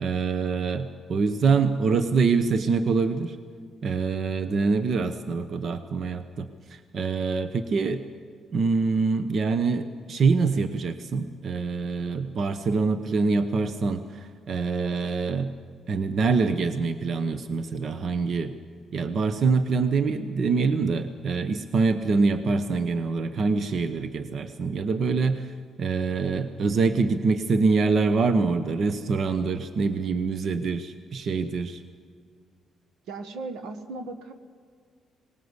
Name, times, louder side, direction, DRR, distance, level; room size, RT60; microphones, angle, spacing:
voice 1, 0.0-3.4 3.8-8.0 8.5-15.5 15.9-18.5 18.9-25.5 25.8-31.8, right 4 dB, 55° right, 10 dB, 1.0 m, -25 dB
voice 2, 33.1-34.3, right 3 dB, 85° right, 8 dB, 1.6 m, -36 dB
19.5 x 19.0 x 8.1 m, 2.1 s
cardioid pair, 90°, 0 cm